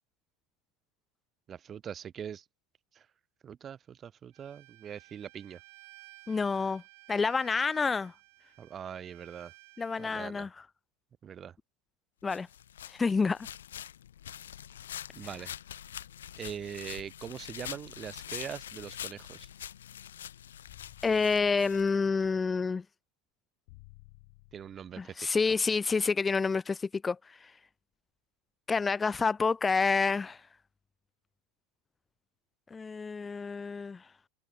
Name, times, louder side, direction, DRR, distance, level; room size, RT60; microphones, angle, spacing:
voice 1, 1.5-2.4 2.9-3.1 3.4-5.6 8.6-9.5 10.0-10.5 11.2-11.5 15.1-15.5 16.4-19.5 24.5-25.1, right 8 dB, 35° right, 0.8 m, -42 dB
Bowed string instrument, 4.3-10.3, right 25 dB, 65° right, 3.5 m, -56 dB
voice 2, 6.3-6.8 7.1-8.1 9.8-10.5 12.2-12.5 12.9-13.5 21.0-22.8 25.0-27.5 28.7-30.4 32.7-34.0, left 4 dB, 20° left, 0.5 m, -28 dB
sound 1, 12.3-22.3, left 10 dB, 80° left, 0.9 m, -45 dB
sound 2, 20.7-22.1 23.7-25.1, left 27 dB, 60° left, 1.4 m, -56 dB
hypercardioid pair, 80°, 0 cm